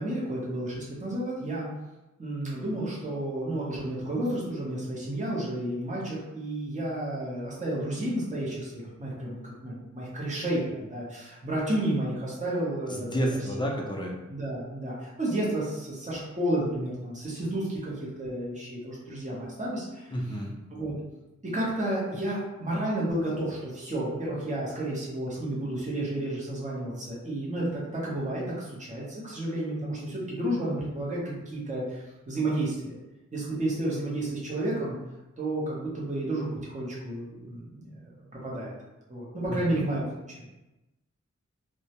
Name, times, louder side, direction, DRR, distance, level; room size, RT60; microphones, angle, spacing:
voice 1, 0.0-1.7 2.2-13.4 14.3-20.2 20.7-20.9 21.4-32.9 33.3-34.9 35.4-38.7 39.1-40.0, right 1 dB, 25° right, -6 dB, 0.7 m, -31 dB
voice 2, 12.9-14.1 20.1-20.5 39.5-39.8, equal, 15° left, -1 dB, 0.5 m, -30 dB
2.2 x 2.0 x 2.8 m, 1.0 s
wide cardioid pair, 75°, 29 cm